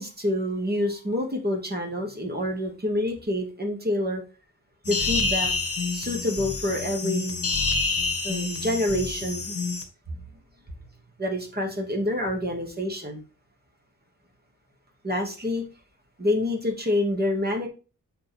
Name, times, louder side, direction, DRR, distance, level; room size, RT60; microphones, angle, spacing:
voice 1, 0.0-4.2 4.9-5.5 5.9-7.4 8.2-9.5 11.2-13.2 15.0-15.6 16.2-17.7, left 1 dB, 30° right, 2 dB, 2.4 m, -27 dB
sound 1, 4.8-9.8, left 3 dB, 45° left, 1.6 m, -28 dB
6.6 x 5.1 x 4.6 m, 0.33 s
wide cardioid pair, 115°, 34 cm